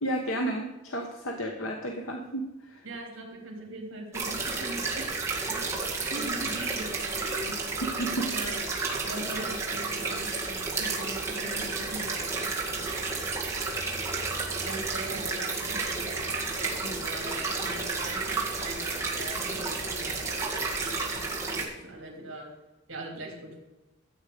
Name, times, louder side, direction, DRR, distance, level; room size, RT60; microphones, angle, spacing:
voice 1, 0.0-2.8 8.0-8.3, right 1 dB, 85° left, 2 dB, 1.2 m, -32 dB
voice 2, 2.8-5.1 5.5-7.6 8.3-8.6 9.1-12.9 14.6-22.5 22.9-23.6, right 1 dB, 70° right, -1 dB, 3.8 m, -41 dB
sound 1, 4.1-21.7, right 3 dB, 15° right, 2.0 m, -31 dB
14.5 x 8.1 x 5.2 m, 1.0 s
head